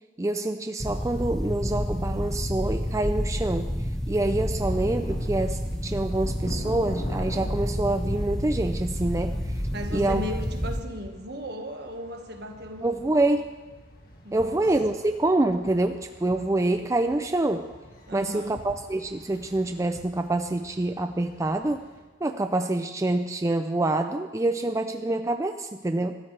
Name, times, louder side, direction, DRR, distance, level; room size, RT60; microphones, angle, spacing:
voice 1, 0.2-3.7 4.1-9.3 9.9-10.2 12.8-13.5 14.3-17.7 18.1-21.9 22.2-26.2, right 2 dB, 15° right, 7 dB, 0.4 m, -26 dB
sound 1, 0.8-10.8, equal, 5° left, 1.1 m, -29 dB
sound 2, 4.6-22.0, left 1 dB, 50° left, 1.9 m, -45 dB
voice 2, 9.7-12.9 14.2-14.7 18.1-18.7, equal, 60° right, 4 dB, 1.6 m, -36 dB
24.0 x 13.0 x 3.3 m, 1.3 s
head